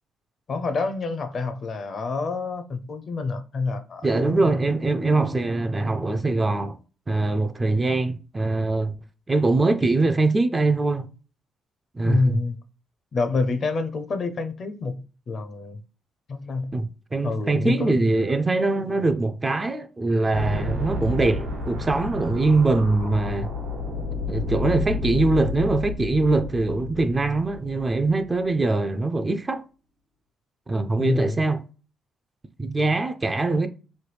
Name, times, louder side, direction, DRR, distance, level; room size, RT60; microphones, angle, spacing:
voice 1, 0.5-4.5 12.0-12.6 13.1-15.0 15.3-15.8 16.3-16.7 17.2-18.1 31.0-31.4, left 3 dB, 50° left, 0.5 m, -27 dB
voice 2, 4.0-6.8 7.1-9.0 9.3-11.1 11.9-12.4 16.7-23.5 24.3-29.6 30.7-31.6 32.6-33.7, right 3 dB, 20° right, 0.3 m, -23 dB
sound 1, 20.3-28.4, left 3 dB, 75° right, 1.1 m, -31 dB
3.1 x 2.2 x 3.2 m
cardioid pair, 90°, 0 cm